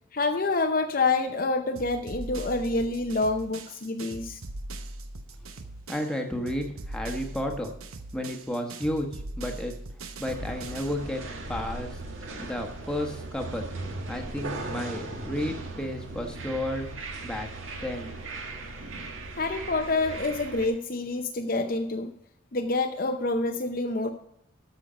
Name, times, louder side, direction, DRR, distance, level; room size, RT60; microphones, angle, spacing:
voice 1, 0.1-4.4 19.4-22.1 22.5-24.1, left 3 dB, 40° left, 6 dB, 0.7 m, -27 dB
sound 1, 1.8-6.2 6.5-11.1, right 2 dB, 85° right, 1.0 m, -40 dB
voice 2, 5.9-7.7 8.1-9.7 10.2-12.0 12.4-13.7 14.1-16.9 17.2-17.5 17.8-18.2, left 1 dB, 5° left, 2 dB, 1.2 m, -32 dB
sound 2, 10.3-20.7, right 2 dB, 70° right, 1.7 m, -38 dB
13.0 x 6.4 x 5.1 m, 0.73 s
head